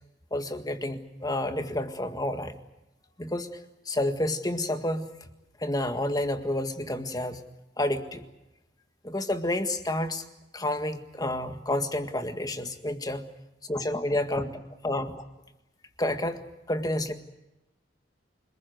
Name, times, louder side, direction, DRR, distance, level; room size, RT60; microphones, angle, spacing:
voice 1, 0.3-2.6 3.2-3.6 3.9-5.1 5.6-7.4 7.8-8.2 9.0-10.2 10.5-13.2 13.7-15.1 16.0-16.4 16.7-17.1, left 1 dB, 20° left, 7 dB, 1.8 m, -29 dB
27.5 x 20.5 x 7.9 m, 0.95 s
head